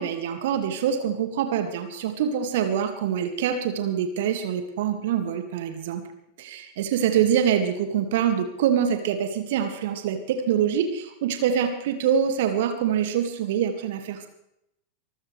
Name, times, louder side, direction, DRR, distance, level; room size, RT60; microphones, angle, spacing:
voice 1, 0.0-6.0 6.4-14.3, right 8 dB, 55° right, 6 dB, 2.1 m, -25 dB
24.5 x 14.5 x 3.4 m, 0.80 s
figure-of-eight pair, 90°, 0 cm